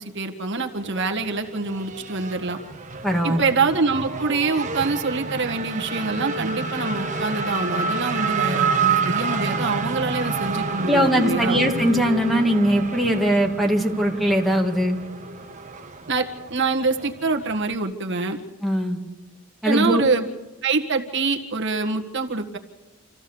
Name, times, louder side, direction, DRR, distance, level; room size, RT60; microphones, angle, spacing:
voice 1, 0.0-2.6 3.2-11.6 16.1-18.4 19.6-20.2 20.6-22.6, right 4 dB, 60° right, 3 dB, 1.7 m, -25 dB
Race car auto racing / Accelerating revving vroom, 0.8-17.7, right 4 dB, 35° right, 1.4 m, -29 dB
voice 2, 3.0-3.4 10.9-15.0 18.6-19.0 19.6-20.1, equal, ahead, 2 dB, 2.1 m, -20 dB
27.0 x 15.5 x 7.1 m, 1.1 s
head